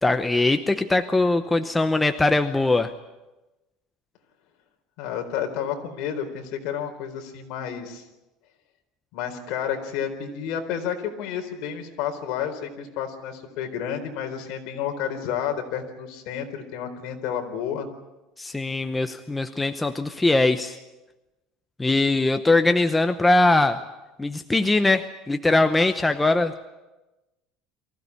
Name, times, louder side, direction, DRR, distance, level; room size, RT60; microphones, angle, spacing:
voice 1, 0.0-2.9 18.4-20.8 21.8-23.8 24.2-26.7, left 2 dB, 10° left, 8 dB, 0.8 m, -21 dB
voice 2, 5.0-8.0 9.1-17.9, left 8 dB, 60° left, 4 dB, 4.2 m, -30 dB
24.0 x 16.0 x 9.8 m, 1.1 s
cardioid pair, 160°, 0 cm